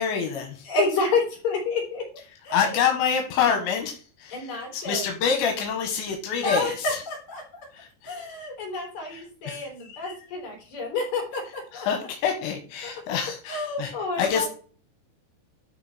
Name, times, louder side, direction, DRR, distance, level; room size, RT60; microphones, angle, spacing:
voice 1, 0.0-0.6 2.5-3.9 4.2-6.7 7.8-7.9 9.1-9.6 9.9-10.0 11.7-13.9 14.2-14.5, left 7 dB, 80° left, 4 dB, 3.4 m, -26 dB
voice 2, 0.6-2.1 2.4-2.8 4.3-5.1 6.4-7.7 8.0-11.9 12.8-14.5, left 3 dB, 40° left, -1 dB, 4.9 m, -29 dB
12.0 x 4.7 x 4.2 m, 0.41 s
omnidirectional pair, 5.2 m